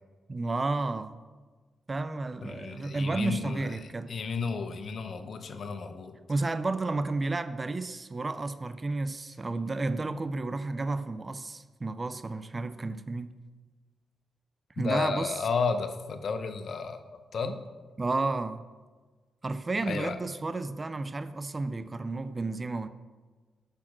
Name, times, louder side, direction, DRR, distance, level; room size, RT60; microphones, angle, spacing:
voice 1, 0.3-1.2 1.9-4.1 6.3-13.3 14.8-15.3 18.0-18.6 19.4-22.9, right 3 dB, 30° right, 11 dB, 0.4 m, -32 dB
voice 2, 2.4-6.1 14.8-17.6 19.8-20.2, left 5 dB, 60° left, 8 dB, 0.8 m, -33 dB
10.5 x 4.3 x 6.0 m, 1.4 s
cardioid pair, 85°, 0 cm